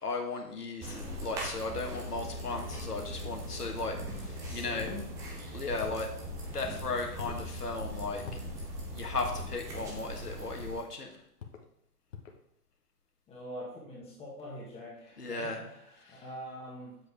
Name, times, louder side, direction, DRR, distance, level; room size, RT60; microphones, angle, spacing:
voice 1, 0.0-4.9 5.5-6.1 6.5-8.2 8.9-11.1 15.2-15.6 16.1-16.2, left 3 dB, 75° left, 2 dB, 1.7 m, -36 dB
sound 1, 0.8-10.8, equal, 5° right, 0.6 m, -41 dB
sound 2, 1.6-9.3, left 2 dB, 35° right, 2.1 m, -46 dB
voice 2, 4.4-5.1 13.3-16.9, equal, 10° left, -4 dB, 1.5 m, -44 dB
sound 3, 4.8-5.0 5.8-6.1 7.2-7.5 8.3-8.5 9.7-10.0 10.6-10.9 11.4-11.7 12.1-12.4, left 7 dB, 55° left, 1.3 m, -45 dB
7.7 x 7.6 x 3.5 m, 0.78 s
figure-of-eight pair, 120°, 47 cm